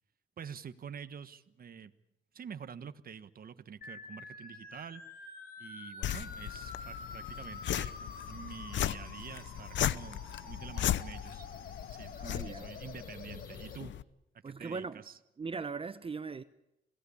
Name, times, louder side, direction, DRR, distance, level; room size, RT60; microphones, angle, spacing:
voice 1, 0.4-1.9 2.3-5.0 5.6-7.9 8.2-11.5 11.9-13.9 14.4-15.2, right 7 dB, 45° right, 1.4 m, -47 dB
sound 1, 3.8-13.8, left 3 dB, 50° left, 4.1 m, -48 dB
sound 2, 6.0-14.0, left 11 dB, 70° left, 0.8 m, -37 dB
voice 2, 12.2-12.7 14.4-15.0 15.4-16.4, right 4 dB, 30° right, 0.9 m, -39 dB
28.0 x 17.5 x 8.6 m
cardioid pair, 90°, 20 cm